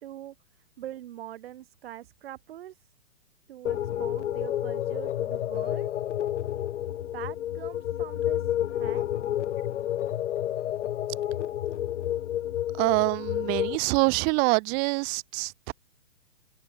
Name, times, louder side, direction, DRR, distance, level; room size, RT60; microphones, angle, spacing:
voice 1, 0.0-2.9 3.5-5.9 7.1-9.2, right 12 dB, 55° right, 2.2 m, -43 dB
sound 1, 3.7-13.8, left 11 dB, 70° left, 0.6 m, -30 dB
voice 2, 12.8-15.7, right 38 dB, 25° right, 0.8 m, -25 dB
hypercardioid pair, 135°, 36 cm